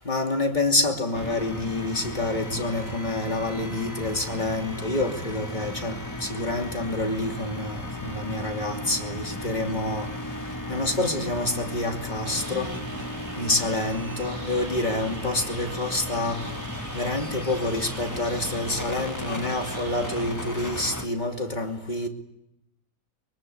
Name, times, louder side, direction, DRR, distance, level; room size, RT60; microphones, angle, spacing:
voice 1, 0.0-10.1 10.7-12.7 13.4-16.4 16.9-22.1, left 2 dB, 30° left, 4 dB, 2.8 m, -28 dB
sound 1, 1.1-21.1, left 1 dB, 10° left, 1.7 m, -35 dB
sound 2, 12.2-20.2, right 3 dB, 45° right, 2.2 m, -43 dB
24.0 x 23.5 x 9.7 m, 0.82 s
omnidirectional pair, 1.6 m